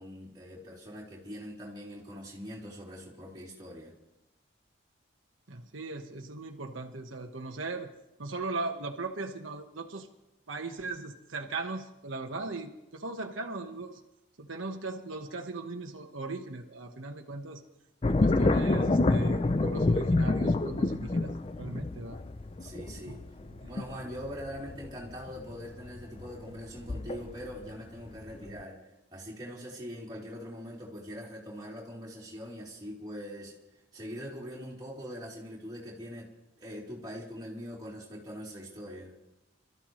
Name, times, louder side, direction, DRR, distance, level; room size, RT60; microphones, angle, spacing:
voice 1, 0.0-3.9 22.6-23.2 23.7-28.8 29.1-33.5 33.9-36.3 36.6-39.1, equal, 20° right, -5 dB, 3.4 m, -42 dB
voice 2, 5.5-7.9 8.2-10.1 10.5-14.0 14.4-17.6 18.1-22.2 23.0-23.1 23.5-23.7, right 3 dB, 90° right, 3 dB, 1.3 m, -38 dB
sound 1, 18.0-27.7 28.1-28.6, left 2 dB, 30° left, 0.4 m, -28 dB
26.0 x 13.5 x 3.2 m, 0.92 s
head